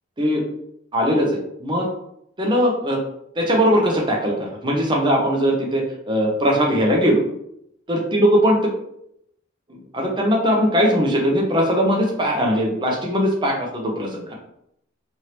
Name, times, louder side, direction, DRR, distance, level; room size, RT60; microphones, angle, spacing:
voice 1, 0.9-1.9 2.4-3.0 3.4-7.2 7.9-8.7 9.7-14.3, equal, 25° right, -1 dB, 0.7 m, -20 dB
3.2 x 2.7 x 2.9 m, 0.75 s
head